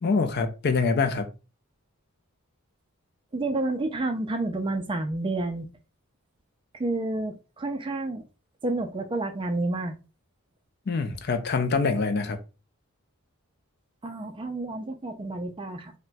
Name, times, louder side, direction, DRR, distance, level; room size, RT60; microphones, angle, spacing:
voice 1, 0.0-1.3 10.9-12.4, left 4 dB, 45° left, 0.4 m, -25 dB
voice 2, 3.3-5.7 6.7-8.2 8.6-9.9 14.0-15.9, right 2 dB, 20° right, 0.3 m, -29 dB
4.1 x 2.1 x 2.2 m
head